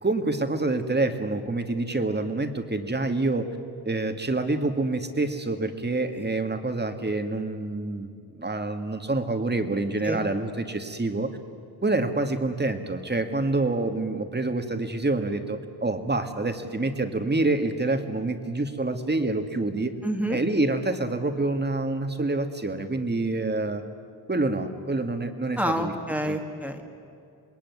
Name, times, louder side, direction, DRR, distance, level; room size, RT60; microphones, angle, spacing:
voice 1, 0.0-3.5 3.8-8.1 8.4-11.3 11.8-19.9 20.3-23.8 24.3-25.9 26.2-26.4, right 2 dB, 25° right, 7 dB, 2.0 m, -27 dB
voice 2, 20.0-20.4 25.6-26.9, equal, 5° right, 3 dB, 2.0 m, -28 dB
27.0 x 21.5 x 9.6 m, 2.5 s
wide cardioid pair, 120°, 40 cm